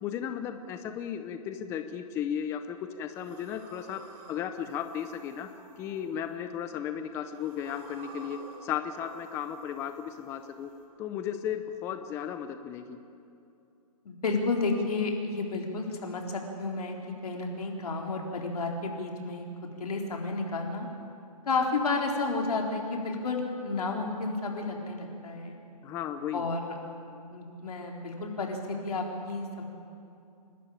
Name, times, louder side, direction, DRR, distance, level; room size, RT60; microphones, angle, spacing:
voice 1, 0.0-4.0 4.3-5.5 5.8-10.7 11.0-13.0 25.8-26.5, left 9 dB, 15° left, 8 dB, 0.6 m, -35 dB
sound 1, 3.1-6.7 7.1-10.8, right 3 dB, 30° right, 2.9 m, -51 dB
voice 2, 14.0-17.0 17.2-19.5 19.8-20.9 21.5-25.6 26.3-26.6 27.3-29.6, left 3 dB, 70° left, 1 dB, 4.0 m, -31 dB
28.5 x 12.0 x 8.9 m, 2.7 s
hypercardioid pair, 155°, 20 cm